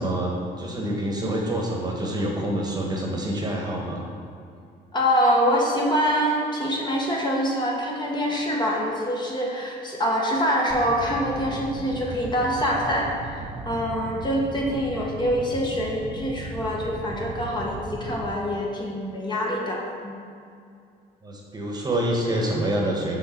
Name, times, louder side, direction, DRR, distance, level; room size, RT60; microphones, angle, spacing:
voice 1, 0.0-4.0 21.2-23.2, right 1 dB, 25° right, -1 dB, 1.2 m, -26 dB
voice 2, 4.9-20.2, equal, 25° left, -2 dB, 1.2 m, -25 dB
sound 1, 10.7-18.3, right 3 dB, 40° right, 0.6 m, -37 dB
6.6 x 3.8 x 5.7 m, 2.4 s
cardioid pair, 110°, 17 cm